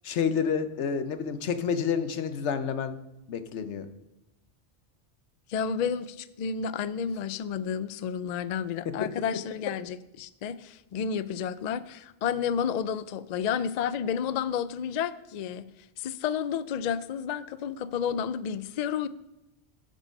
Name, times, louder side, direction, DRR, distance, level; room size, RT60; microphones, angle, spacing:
voice 1, 0.0-3.0 3.3-3.9 8.9-9.1, left 6 dB, 85° left, 10 dB, 1.1 m, -29 dB
voice 2, 5.5-15.7 16.0-19.1, left 7 dB, 60° left, 14 dB, 0.4 m, -31 dB
13.5 x 5.4 x 5.3 m, 0.93 s
omnidirectional pair, 1.1 m